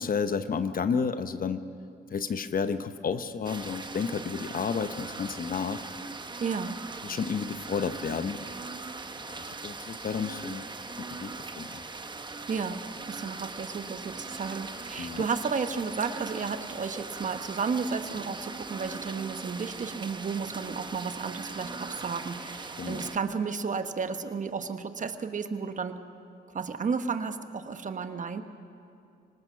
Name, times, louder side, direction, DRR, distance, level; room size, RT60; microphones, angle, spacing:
voice 1, 0.0-1.7 2.1-5.8 7.0-8.4 9.2-10.7 11.0-11.8 15.0-15.2 22.8-23.1, left 6 dB, 45° left, 11 dB, 1.0 m, -31 dB
sound 1, 3.4-23.2, right 3 dB, 20° right, 1.0 m, -40 dB
voice 2, 6.4-6.8 12.5-12.8 13.1-26.0 26.5-28.4, right 5 dB, 40° right, 9 dB, 1.2 m, -33 dB
24.5 x 19.5 x 5.8 m, 2.7 s
cardioid pair, 90°, 20 cm